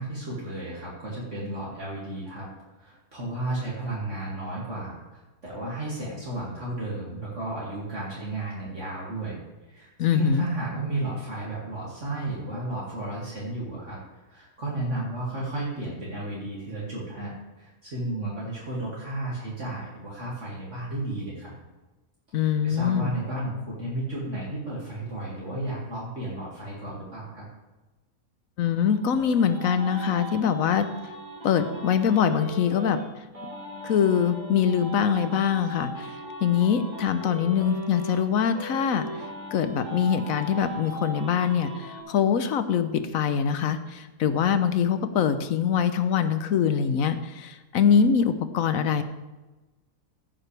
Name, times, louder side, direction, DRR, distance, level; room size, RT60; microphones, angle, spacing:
voice 1, 0.0-2.5 2.8-9.4 9.7-21.5 22.3-27.5, right 2 dB, 55° right, -6 dB, 2.7 m, -33 dB
voice 2, 10.0-10.4 22.3-23.1 28.6-30.9 31.4-33.0 33.8-39.1 39.5-49.0, left 7 dB, 70° left, 10 dB, 1.1 m, -23 dB
sound 1, 28.6-33.0 33.3-38.2 38.5-42.0, right 1 dB, 20° right, 3.4 m, -39 dB
15.5 x 9.0 x 3.3 m, 1.1 s
omnidirectional pair, 1.5 m